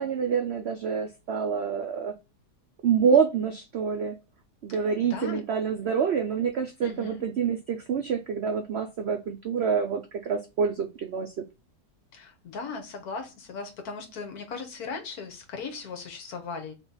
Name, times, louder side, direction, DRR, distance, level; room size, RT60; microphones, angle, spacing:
voice 1, 0.0-2.1 2.8-4.1 4.6-11.3, right 6 dB, 90° right, 5 dB, 0.5 m, -27 dB
voice 2, 4.7-5.4 6.8-7.2 12.1-16.9, left 4 dB, 65° left, 5 dB, 1.4 m, -38 dB
3.8 x 3.0 x 3.9 m, 0.26 s
omnidirectional pair, 1.8 m